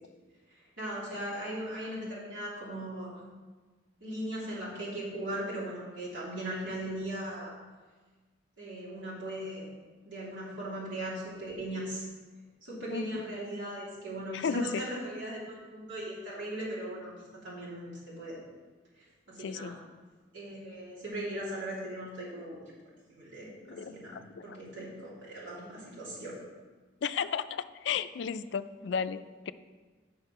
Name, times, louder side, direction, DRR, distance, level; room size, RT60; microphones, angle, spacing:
voice 1, 0.5-3.2 4.0-7.5 8.6-9.7 10.0-12.0 12.6-17.1 17.4-18.4 19.0-19.8 20.3-22.6 23.1-26.4, right 1 dB, 75° right, -7 dB, 3.2 m, -38 dB
voice 2, 14.3-14.8 19.4-19.8 23.7-24.6 27.0-29.5, left 6 dB, 65° left, 12 dB, 0.3 m, -34 dB
8.1 x 6.3 x 5.6 m, 1.4 s
head